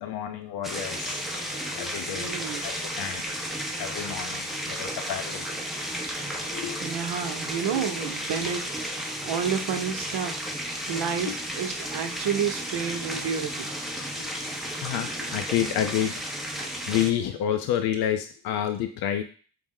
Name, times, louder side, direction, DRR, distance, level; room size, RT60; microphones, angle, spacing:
voice 1, 0.0-3.2 3.7-5.5 6.5-6.8 7.7-7.8 11.3-11.4 14.1-16.2 16.6-19.2, left 10 dB, 60° left, 7 dB, 0.5 m, -30 dB
sound 1, 0.6-17.1, equal, ahead, 0.5 m, -33 dB
voice 2, 2.1-2.7 6.8-8.7 8.9-10.3 10.9-13.7, right 7 dB, 70° right, 6 dB, 0.7 m, -30 dB
4.7 x 2.0 x 3.6 m, 0.40 s
cardioid pair, 80°, 42 cm